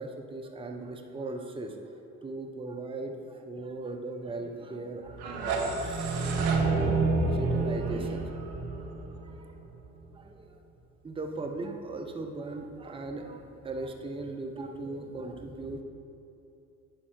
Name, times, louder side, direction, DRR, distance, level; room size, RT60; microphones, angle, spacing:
voice 1, 0.0-1.7 2.2-6.4 6.8-8.3 10.1-10.5 11.0-15.8, right 2 dB, 15° right, 4 dB, 0.7 m, -38 dB
sound 1, 5.1-10.0, right 3 dB, 60° right, 1.2 m, -29 dB
9.9 x 5.6 x 3.3 m, 2.9 s
hypercardioid pair, 60°, 42 cm